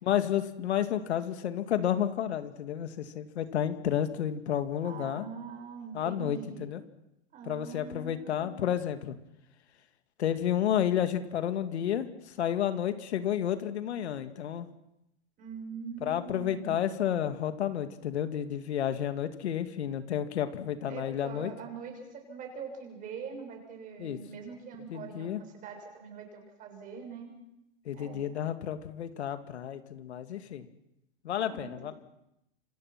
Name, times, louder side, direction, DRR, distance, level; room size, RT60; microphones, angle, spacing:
voice 1, 0.0-5.2 5.9-6.8 7.5-9.2 10.2-14.7 16.0-21.5 24.0-24.2 24.9-25.4 27.9-30.7 31.2-31.9, left 10 dB, 80° left, 10 dB, 2.3 m, -31 dB
voice 2, 4.8-6.7 7.3-8.7 15.4-16.8 20.9-27.3 27.9-28.2 31.4-31.7, right 6 dB, 25° right, 3 dB, 6.6 m, -43 dB
27.5 x 25.5 x 6.0 m, 0.85 s
supercardioid pair, 155°, 33 cm